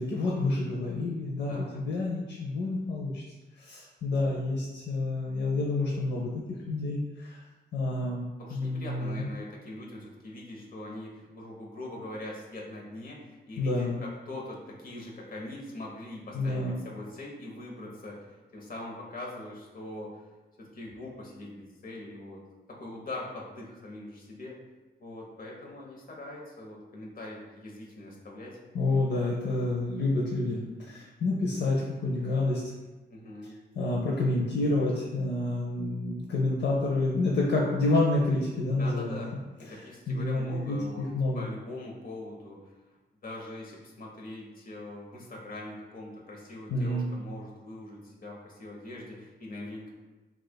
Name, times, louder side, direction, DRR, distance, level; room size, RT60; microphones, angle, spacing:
voice 1, 0.0-3.2 3.6-6.3 6.7-7.4 7.7-9.3 13.6-14.0 16.3-16.8 28.7-32.6 33.8-39.2 40.1-41.5 46.7-47.1, left 2 dB, 80° left, -3 dB, 0.6 m, -28 dB
voice 2, 1.5-1.8 8.4-20.2 20.6-22.4 22.7-24.5 25.0-28.6 33.1-33.5 38.8-39.3 39.6-41.1 41.3-42.6 43.2-49.9, left 2 dB, 55° left, -2 dB, 0.9 m, -42 dB
6.2 x 2.4 x 2.2 m, 1.1 s
wide cardioid pair, 140°, 18 cm